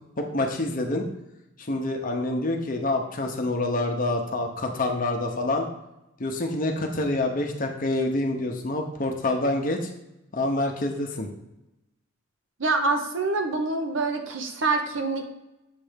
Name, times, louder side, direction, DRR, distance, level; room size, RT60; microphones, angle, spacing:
voice 1, 0.2-1.0 1.6-5.7 6.2-9.9 10.3-11.3, left 2 dB, 40° left, 3 dB, 0.9 m, -27 dB
voice 2, 12.6-15.2, right 3 dB, 60° right, 5 dB, 0.9 m, -26 dB
7.4 x 3.4 x 5.1 m, 0.91 s
head